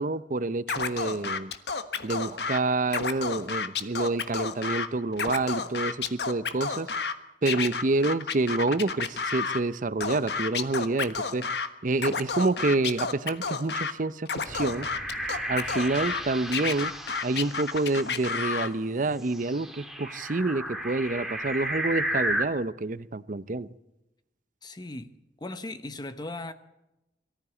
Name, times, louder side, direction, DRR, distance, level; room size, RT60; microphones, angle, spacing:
voice 1, 0.0-1.5 2.0-6.9 7.4-11.4 11.8-14.9 15.5-16.9 17.2-23.7, right 2 dB, 50° right, 0.7 m, -28 dB
Scratching (performance technique), 0.7-2.6 2.9-4.9 5.1-7.1 7.5-9.6 10.0-11.7 12.0-13.9 14.3-16.2 16.5-18.7, left 5 dB, 70° left, 1.4 m, -30 dB
sound 1, 14.5-18.4 19.3-22.5, right 1 dB, ahead, 2.0 m, -33 dB
voice 2, 24.6-25.1 25.4-26.5, left 2 dB, 25° left, 0.9 m, -37 dB
23.0 x 14.0 x 8.3 m
head